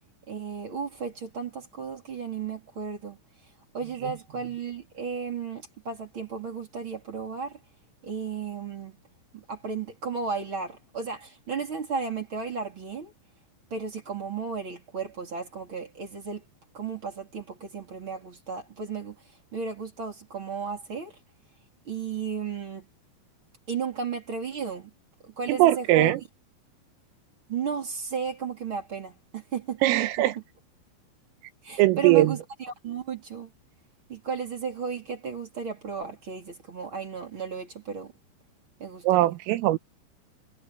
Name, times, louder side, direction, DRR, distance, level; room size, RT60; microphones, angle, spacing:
voice 1, 0.3-3.2 3.7-7.6 8.0-9.0 9.3-13.1 13.7-16.4 16.7-19.2 19.5-21.2 21.8-22.9 23.7-24.9 25.2-26.1 27.5-30.4 31.6-33.5 34.1-38.1 38.8-39.3, right 6 dB, 30° right, 3.6 m, -34 dB
voice 2, 25.5-26.2 29.8-30.3 31.8-32.3 39.1-39.8, right 16 dB, 90° right, 3.7 m, -20 dB
omnidirectional pair, 5.8 m